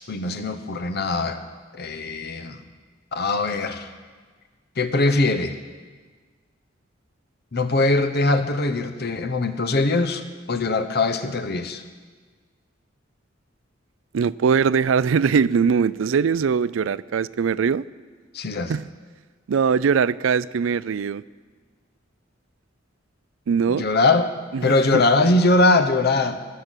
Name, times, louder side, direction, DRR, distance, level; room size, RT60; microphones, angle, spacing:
voice 1, 0.0-1.4 1.7-2.6 3.1-3.9 4.8-5.5 7.5-11.8 18.3-18.7 23.7-24.3 24.6-26.4, left 2 dB, 55° left, 9 dB, 1.0 m, -21 dB
voice 2, 14.1-17.8 18.7-18.8 19.5-21.2 23.5-23.9 24.5-25.0, right 6 dB, 85° right, 19 dB, 0.4 m, -21 dB
19.0 x 7.6 x 8.2 m, 1.5 s
head